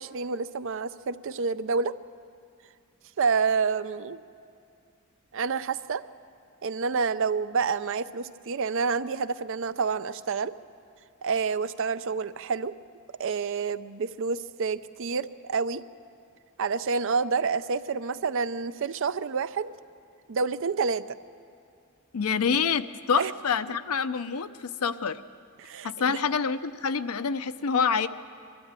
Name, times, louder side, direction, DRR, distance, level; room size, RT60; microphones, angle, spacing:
voice 1, 0.0-1.9 3.2-4.2 5.3-6.0 6.6-10.5 11.2-12.7 13.2-15.8 16.6-19.7 20.3-21.1 23.2-23.3 25.6-26.2, right 5 dB, 60° right, 13 dB, 0.5 m, -28 dB
voice 2, 22.1-25.2 25.8-28.1, left 6 dB, 80° left, 12 dB, 0.6 m, -27 dB
22.5 x 13.0 x 8.9 m, 2.4 s
head